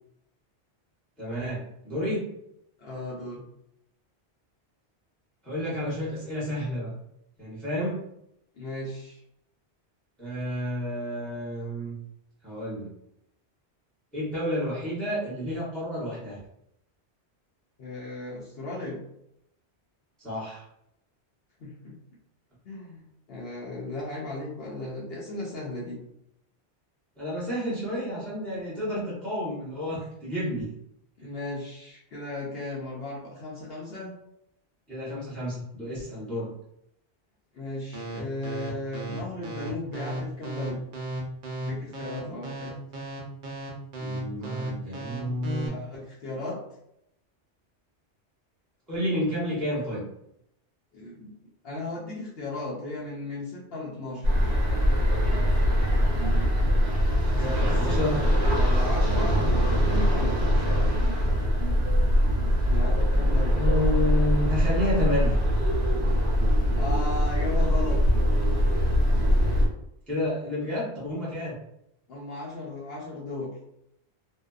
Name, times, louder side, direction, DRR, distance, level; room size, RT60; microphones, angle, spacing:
voice 1, 1.2-2.2 5.4-6.9 7.4-8.0 10.2-12.0 12.4-12.9 14.1-16.4 20.2-20.6 27.2-30.7 31.2-31.3 34.9-36.5 44.0-45.7 48.9-50.0 57.4-58.2 63.5-65.4 70.1-71.5, left 1 dB, ahead, -8 dB, 0.8 m, -30 dB
voice 2, 2.8-3.4 8.6-9.2 17.8-19.0 21.6-22.0 22.6-23.0 23.3-26.0 31.2-34.1 37.5-40.8 41.6-42.7 45.7-46.6 50.9-51.3 51.6-54.2 57.3-60.8 62.7-63.7 66.8-68.0 72.1-73.5, left 2 dB, 65° left, -5 dB, 0.8 m, -36 dB
sound 1, 37.9-45.7, right 2 dB, 55° right, 0.7 m, -35 dB
sound 2, 54.2-69.7, equal, 75° right, 1.0 m, -22 dB
2.6 x 2.2 x 2.3 m, 0.77 s
omnidirectional pair, 1.1 m